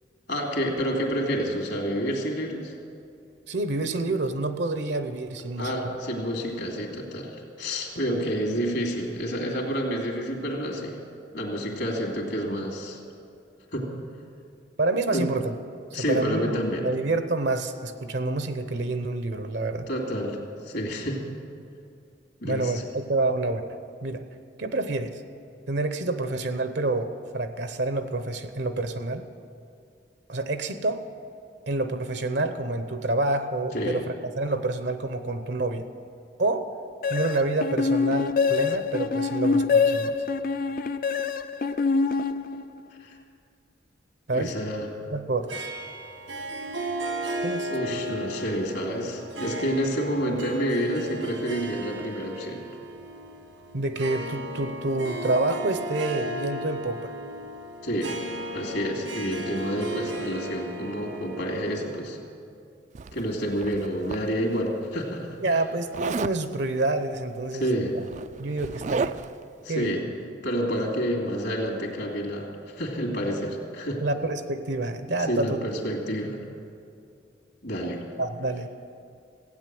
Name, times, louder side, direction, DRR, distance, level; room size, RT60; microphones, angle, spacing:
voice 1, 0.3-2.7 5.6-11.0 11.3-13.0 13.7-13.9 15.1-15.3 15.9-16.9 19.9-21.3 22.4-22.8 33.7-34.0 43.0-43.2 44.3-44.9 47.7-52.6 57.8-58.2 58.5-62.2 63.1-65.4 67.5-67.9 69.6-70.1 70.4-74.0 75.3-76.4 77.6-78.0, equal, 70° left, 1 dB, 2.6 m, -29 dB
voice 2, 3.5-5.9 14.8-15.5 16.1-19.9 22.4-23.7 24.0-24.2 24.6-25.2 25.7-29.3 30.3-31.0 31.7-35.9 36.4-36.7 37.1-40.2 44.3-44.5 45.1-45.7 47.4-48.0 53.7-57.1 65.4-67.7 68.4-69.2 69.7-70.0 74.0-75.6 78.2-78.7, right 2 dB, 65° right, 9 dB, 0.8 m, -28 dB
sound 1, 37.0-42.9, left 4 dB, 50° left, 0.5 m, -25 dB
Harp, 45.5-62.2, right 1 dB, 85° right, 1.6 m, -35 dB
Zipper (clothing), 62.9-64.6 65.9-66.4 67.6-67.7 68.0-69.4, right 5 dB, 40° right, 0.3 m, -34 dB
15.5 x 9.2 x 7.7 m, 2.5 s
head